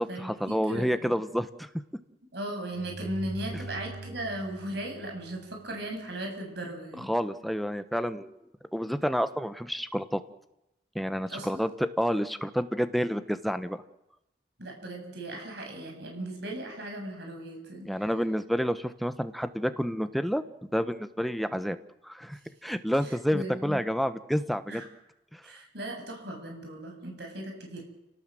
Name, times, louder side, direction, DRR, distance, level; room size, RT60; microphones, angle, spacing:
voice 1, 0.0-1.7 7.0-8.4 8.7-10.2 10.9-13.8 17.8-20.4 20.7-21.8 22.0-24.8 25.3-25.4, equal, ahead, 10 dB, 1.1 m, -29 dB
voice 2, 0.7-1.1 2.3-7.1 11.3-11.6 14.6-17.9 23.1-23.8 24.7-24.8 25.4-27.8, right 1 dB, 60° right, 2 dB, 7.9 m, -37 dB
sound 1, 2.7-5.9, right 3 dB, 40° right, 6.4 m, -42 dB
30.0 x 18.5 x 7.8 m, 0.91 s
head